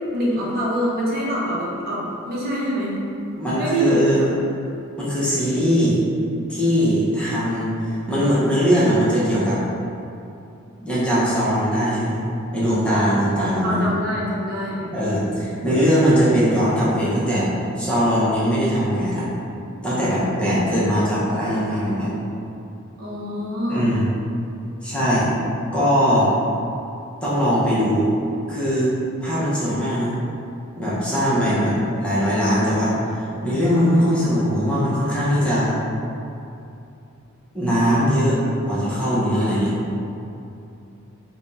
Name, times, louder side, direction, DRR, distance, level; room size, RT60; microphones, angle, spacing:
voice 1, 0.1-2.9 3.5-4.3 13.6-14.9 23.0-23.9 31.3-31.9, equal, 45° right, -7 dB, 0.8 m, -24 dB
voice 2, 3.4-4.2 5.0-6.0 6.5-9.6 10.8-12.2 12.5-13.8 14.9-17.5 17.8-19.3 19.8-22.1 23.7-24.1 24.8-25.3 25.7-26.3 27.2-28.1 28.5-28.9 29.2-30.1 30.8-35.7 37.5-38.4 38.6-39.8, equal, 5° left, -10 dB, 0.7 m, -20 dB
3.4 x 2.2 x 3.9 m, 2.7 s
head